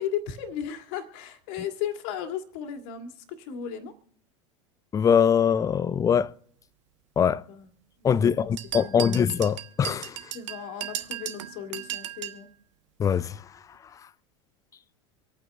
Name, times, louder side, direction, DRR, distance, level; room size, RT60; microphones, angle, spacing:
voice 1, 0.0-3.9 7.3-7.7 8.0-8.5 8.8-9.2 10.3-12.5, left 9 dB, 50° left, 2.0 m, -35 dB
voice 2, 4.9-6.3 7.2-7.4 8.0-10.2 13.0-13.4, left 7 dB, 20° left, 0.5 m, -22 dB
sound 1, 8.6-12.4, right 11 dB, 65° right, 1.0 m, -36 dB
26.0 x 9.0 x 3.4 m
figure-of-eight pair, 80°, 17 cm